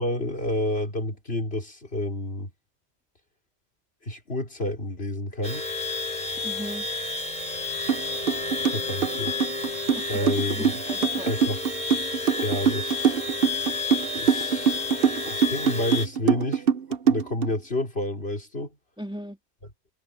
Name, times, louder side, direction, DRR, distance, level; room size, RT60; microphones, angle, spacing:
voice 1, 0.0-2.5 4.0-5.7 8.6-9.3 10.1-10.7 11.2-11.7 12.4-13.1 14.1-14.8 15.2-18.8, left 1 dB, 65° left, 4.2 m, -30 dB
sound 1, 5.4-16.1, left 3 dB, 40° left, 5.9 m, -31 dB
voice 2, 6.4-6.9 9.9-11.3 19.0-19.4, equal, 5° right, 2.8 m, -37 dB
sound 2, 7.9-8.0 8.3-17.5, right 8 dB, 60° right, 1.1 m, -23 dB
omnidirectional pair, 1.1 m